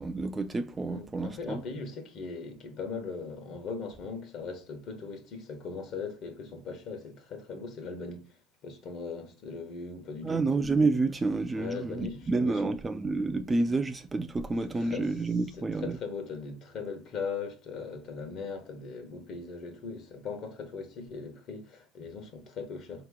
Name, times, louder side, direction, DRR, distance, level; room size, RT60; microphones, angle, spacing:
voice 1, 0.0-1.6 10.2-16.0, right 3 dB, 15° right, 0.3 m, -29 dB
voice 2, 0.9-8.2 8.6-10.4 11.5-12.8 14.6-15.1 15.5-23.1, left 4 dB, 55° left, 1.1 m, -39 dB
3.9 x 2.9 x 3.6 m
supercardioid pair, 115°, 0 cm